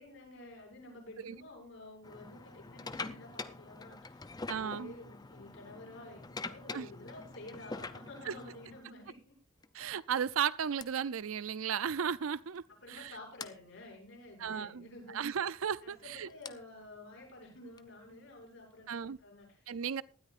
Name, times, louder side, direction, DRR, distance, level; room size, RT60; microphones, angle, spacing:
voice 1, 0.0-9.4 12.7-15.3 15.8-19.8, left 2 dB, 70° left, 7.0 m, -51 dB
sound 1, 2.0-8.8 9.6-9.8 10.8-10.9 12.2-12.3 12.5-12.7 13.4-13.5 15.3-18.4, left 3 dB, 20° left, 0.5 m, -45 dB
voice 2, 4.5-4.9 6.7-6.9 8.3-8.4 9.7-12.6 12.9-13.1 14.4-14.9 15.1-16.3 18.9-19.2 19.7-20.0, right 7 dB, 80° right, 0.5 m, -34 dB
18.5 x 13.0 x 2.5 m
head